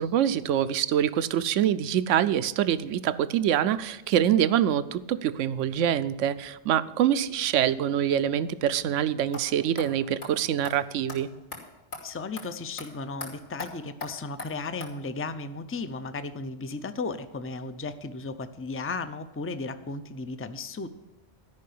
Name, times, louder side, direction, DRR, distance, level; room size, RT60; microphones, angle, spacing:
voice 1, 0.0-11.3, right 10 dB, 80° right, 14 dB, 1.0 m, -25 dB
sound 1, 9.3-9.4 9.8-9.9 10.2-10.3 10.6-10.8 11.1-11.2 11.5-11.6 11.9-12.0 12.4-12.5 12.8-12.9 13.2-13.3 13.6-13.7 14.0-14.1 14.4-14.5 14.8-14.9, left 3 dB, 65° left, 3.1 m, -38 dB
voice 2, 12.0-20.9, left 3 dB, 20° left, 11 dB, 0.4 m, -35 dB
13.0 x 5.7 x 8.5 m, 1.1 s
omnidirectional pair, 1.3 m